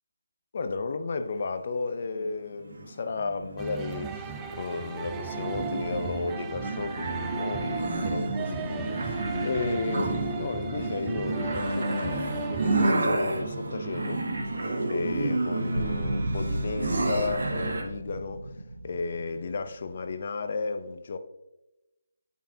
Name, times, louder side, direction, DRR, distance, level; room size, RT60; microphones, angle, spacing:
voice 1, 0.5-14.2 14.5-18.5 18.8-21.2, left 4 dB, 45° left, 0.6 m, -33 dB
sound 1, 2.2-17.8, right 2 dB, 60° right, 1.2 m, -31 dB
sound 2, 3.6-12.9, right 6 dB, 10° right, 0.3 m, -37 dB
sound 3, 13.5-14.1 15.7-20.2, right 1 dB, 85° right, 0.8 m, -36 dB
8.3 x 5.5 x 2.7 m
figure-of-eight pair, 160°, 0 cm